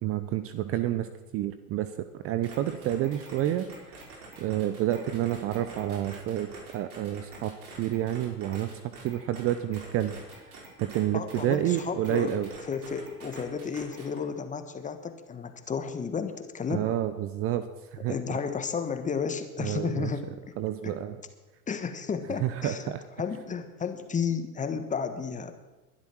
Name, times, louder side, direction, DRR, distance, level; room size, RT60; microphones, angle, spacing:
voice 1, 0.0-4.0 4.4-7.5 7.8-10.2 10.8-12.6 16.7-17.7 17.9-18.4 19.6-21.2 22.3-23.0, right 12 dB, 30° right, 12 dB, 0.8 m, -29 dB
sound 1, 2.4-11.0 11.3-14.2, right 3 dB, 65° right, 5.2 m, -46 dB
voice 2, 11.1-12.4 12.7-16.9 18.1-20.3 20.8-21.0 21.7-22.9 23.2-25.5, left 6 dB, 15° left, 9 dB, 1.4 m, -32 dB
21.0 x 11.5 x 4.7 m, 1.1 s
figure-of-eight pair, 90°, 46 cm